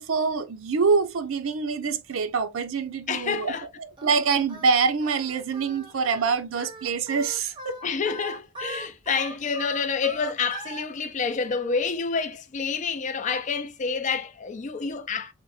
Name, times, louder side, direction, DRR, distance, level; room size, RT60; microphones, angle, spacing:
voice 1, 0.0-7.8, right 5 dB, 80° right, 0.5 m, -25 dB
voice 2, 3.1-3.6 7.8-15.3, left 5 dB, 35° left, 0.4 m, -28 dB
Singing, 4.0-10.9, right 2 dB, 25° right, 0.7 m, -40 dB
4.0 x 2.1 x 3.1 m
head